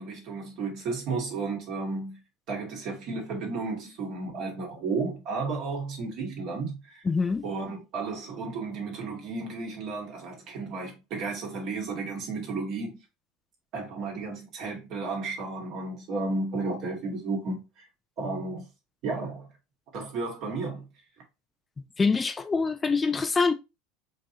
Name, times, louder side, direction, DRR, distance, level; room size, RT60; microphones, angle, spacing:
voice 1, 0.0-2.2 2.5-7.0 7.4-13.0 13.7-17.8 18.2-18.7 19.0-19.5 19.9-20.8, right 3 dB, 55° right, 1.8 m, -33 dB
voice 2, 7.1-7.4 22.0-23.5, left 4 dB, 20° left, 0.4 m, -25 dB
4.4 x 2.9 x 2.8 m
hypercardioid pair, 80°, 0 cm